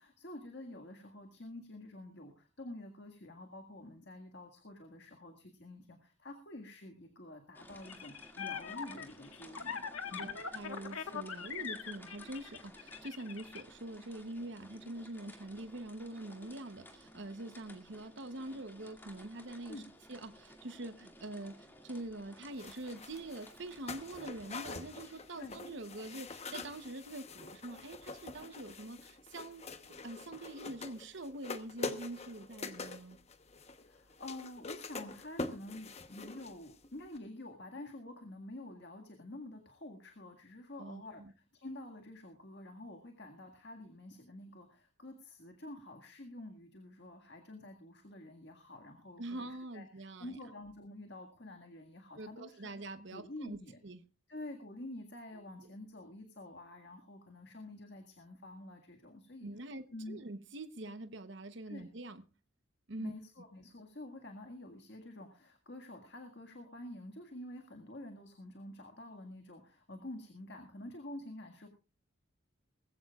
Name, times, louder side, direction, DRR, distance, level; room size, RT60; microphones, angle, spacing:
voice 1, 0.0-10.4 19.7-19.9 25.4-25.6 33.8-53.8 54.3-59.5 59.9-60.2 61.7-61.9 63.0-71.7, left 1 dB, 55° left, 1.9 m, -49 dB
sound 1, 7.5-25.5, equal, 10° left, 2.2 m, -57 dB
sound 2, 7.8-13.6, left 7 dB, 85° left, 1.4 m, -42 dB
voice 2, 10.2-19.8 20.1-29.6 30.0-33.2 40.8-41.3 49.2-50.4 52.2-53.6 53.8-54.0 59.4-62.2 62.9-63.1, right 2 dB, 55° right, 0.9 m, -44 dB
sound 3, 22.6-36.9 37.1-37.2, left 3 dB, 30° left, 1.0 m, -45 dB
20.0 x 15.5 x 2.4 m
head